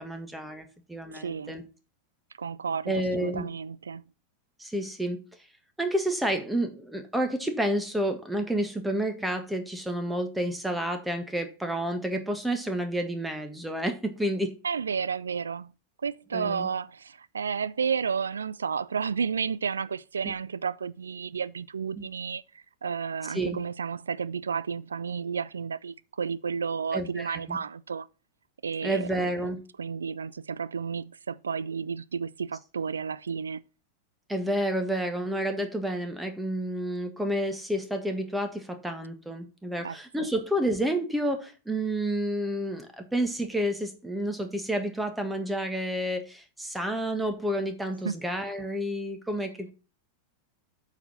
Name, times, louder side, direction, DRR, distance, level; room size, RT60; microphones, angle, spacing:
voice 1, 0.0-1.6 2.9-3.5 4.6-5.2 5.8-14.6 16.3-16.7 22.0-22.1 23.3-23.6 26.9-27.6 28.8-29.6 34.3-49.7, right 1 dB, 5° right, 1.5 m, -30 dB
voice 2, 1.1-1.5 2.4-4.0 14.6-15.7 16.0-28.1 28.6-29.1 29.8-33.6 39.8-40.0 48.0-48.2, right 6 dB, 70° right, 0.4 m, -32 dB
7.8 x 4.9 x 5.6 m
figure-of-eight pair, 90°, 0 cm